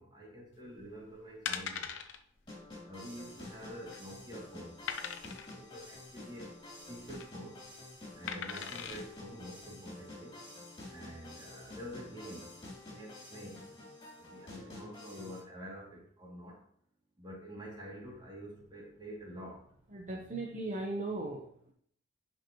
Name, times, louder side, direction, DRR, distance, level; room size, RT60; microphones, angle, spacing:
voice 1, 0.0-1.9 2.8-4.8 5.5-6.5 6.9-7.6 8.1-10.4 10.9-12.5 12.9-13.6 14.2-16.6 17.2-19.7, equal, 25° right, -4 dB, 2.6 m, -47 dB
sound 1, 0.8-1.0 1.5-2.2 2.5-2.7 2.9-3.0 3.6-4.1 4.9-5.6 6.9-7.3 8.3-9.0 9.6-9.7, left 7 dB, 85° left, 0.7 m, -40 dB
sound 2, 2.5-15.4, left 2 dB, 25° left, 3.4 m, -49 dB
voice 2, 19.9-21.7, right 2 dB, 40° right, -1 dB, 1.0 m, -38 dB
11.0 x 5.3 x 3.1 m, 0.63 s
head